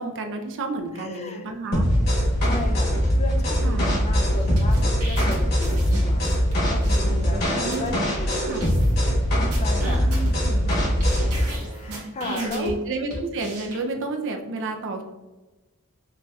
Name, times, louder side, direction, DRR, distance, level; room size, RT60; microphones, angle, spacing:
voice 1, 0.0-1.9 3.6-4.0 7.0-8.1 8.5-8.6 9.8-10.8 11.9-15.0, right 3 dB, 60° right, 5 dB, 0.5 m, -31 dB
voice 2, 0.9-1.5 2.4-8.9 9.6-10.7 11.0-11.3 11.6-12.8, left 2 dB, 30° left, 5 dB, 0.4 m, -35 dB
sound 1, 1.7-11.4, equal, 45° left, 1.3 m, -22 dB
sound 2, 4.4-6.5 6.8-7.0 7.4-7.5 7.7-7.9 8.3-8.4 8.6-9.1 9.5-10.7 11.0-12.7 13.1-13.7, right 2 dB, 85° right, 1.4 m, -37 dB
5.1 x 2.8 x 2.3 m, 1.2 s
head